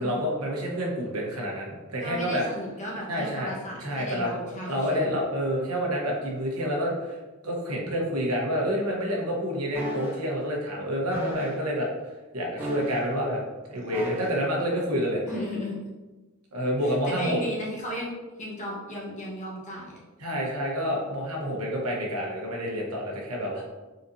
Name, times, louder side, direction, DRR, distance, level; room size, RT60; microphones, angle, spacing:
voice 1, 0.0-2.4 3.1-3.5 3.8-4.3 4.7-7.2 7.4-11.9 12.3-13.4 13.7-15.2 16.5-17.4 20.2-23.6, equal, 85° right, -2 dB, 1.1 m, -28 dB
voice 2, 2.0-5.2 13.7-13.9 15.2-15.8 16.8-18.1 18.4-20.0, equal, 35° left, -4 dB, 1.2 m, -35 dB
sound 1, 9.7-10.2 11.1-11.6 12.6-13.2 13.9-14.5 15.3-15.5, equal, 10° right, 0.7 m, -35 dB
4.2 x 4.0 x 2.7 m, 1.2 s
head